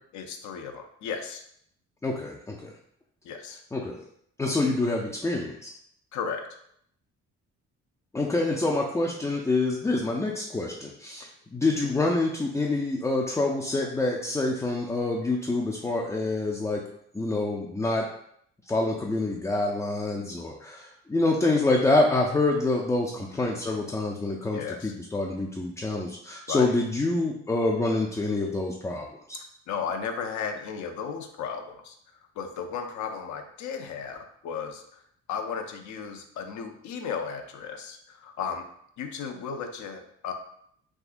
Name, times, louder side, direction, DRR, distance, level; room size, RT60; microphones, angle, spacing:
voice 1, 0.1-1.4 3.2-3.6 6.1-6.5 23.3-23.8 24.5-24.9 26.5-26.7 29.3-32.0 32.4-35.0 35.3-38.7 39.0-40.3, left 6 dB, 70° left, 5 dB, 0.5 m, -35 dB
voice 2, 2.0-2.7 3.7-4.0 4.4-5.7 8.1-11.3 11.5-16.8 17.1-18.1 18.7-29.4, left 2 dB, 10° left, -1 dB, 0.3 m, -26 dB
3.5 x 2.7 x 2.4 m, 0.69 s
cardioid pair, 90°, 30 cm